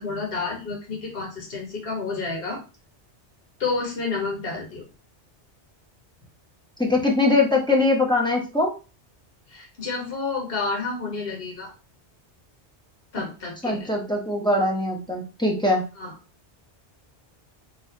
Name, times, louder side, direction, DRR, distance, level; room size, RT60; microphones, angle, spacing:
voice 1, 0.0-2.6 3.6-4.8 9.5-11.7 13.1-13.9 16.0-16.1, left 4 dB, 60° left, -1 dB, 1.7 m, -30 dB
voice 2, 6.8-8.7 13.6-15.8, left 2 dB, 5° left, -1 dB, 1.0 m, -22 dB
3.5 x 3.3 x 4.3 m, 0.32 s
omnidirectional pair, 1.1 m